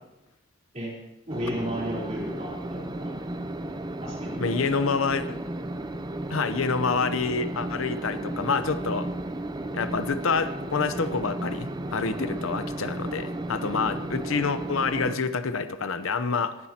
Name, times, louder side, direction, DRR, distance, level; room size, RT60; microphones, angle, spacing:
sound 1, 1.3-15.2, right 1 dB, 20° right, 0.6 m, -34 dB
voice 1, 1.3-3.2 4.0-4.8, equal, 35° right, -4 dB, 3.8 m, -34 dB
voice 2, 4.4-5.4 6.3-9.1 9.7-16.6, left 4 dB, 85° left, 11 dB, 0.8 m, -27 dB
18.0 x 11.5 x 2.9 m, 0.95 s
head